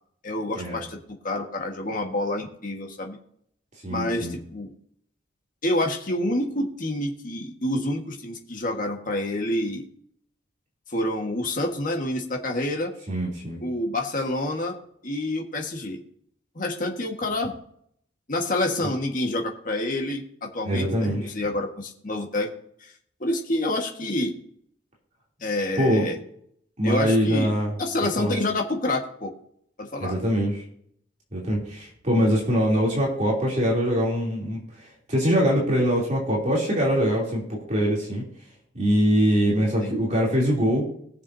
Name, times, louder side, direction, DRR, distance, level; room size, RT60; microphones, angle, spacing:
voice 1, 0.2-1.0 1.2-3.2 3.9-4.7 5.6-9.8 10.9-12.9 13.6-14.8 15.0-16.0 16.5-17.5 18.3-22.5 22.8-22.9 23.2-24.3 25.4-26.1 26.8-27.5 27.8-29.3 29.8-30.1 39.8-40.0, left 1 dB, 45° left, 2 dB, 1.6 m, -28 dB
voice 2, 3.8-4.3 13.1-13.6 20.6-21.2 25.8-26.1 26.8-27.7 28.2-28.3 30.0-30.6 31.3-38.2 38.7-40.9, equal, 35° right, -3 dB, 3.1 m, -23 dB
21.0 x 7.0 x 2.7 m, 0.68 s
head